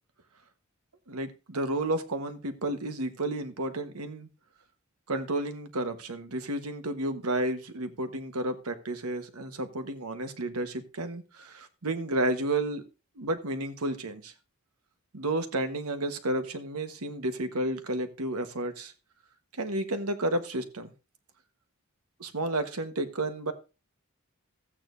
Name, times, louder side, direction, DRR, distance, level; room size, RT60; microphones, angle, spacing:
voice 1, 1.1-4.3 5.1-12.8 13.2-14.3 15.1-18.9 19.5-20.9 22.2-23.5, right 1 dB, 90° right, 8 dB, 1.3 m, -31 dB
14.5 x 8.7 x 2.6 m, 0.30 s
head